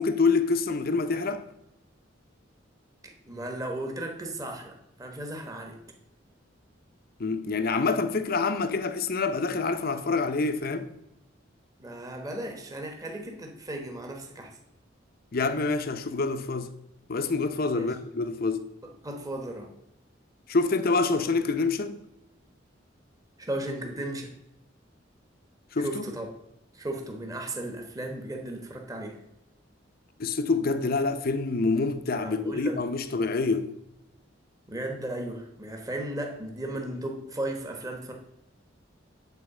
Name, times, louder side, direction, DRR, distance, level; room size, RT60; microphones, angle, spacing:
voice 1, 0.0-1.4 7.2-10.9 15.3-16.7 17.1-18.6 20.5-22.0 25.7-26.0 30.2-33.7, left 4 dB, 50° left, 0.7 m, -26 dB
voice 2, 3.0-5.8 11.8-14.6 17.7-17.9 18.8-19.7 23.4-24.3 25.8-26.3 26.7-29.2 32.2-32.8 34.7-38.1, right 1 dB, 20° right, 1.1 m, -35 dB
8.2 x 4.6 x 7.1 m
head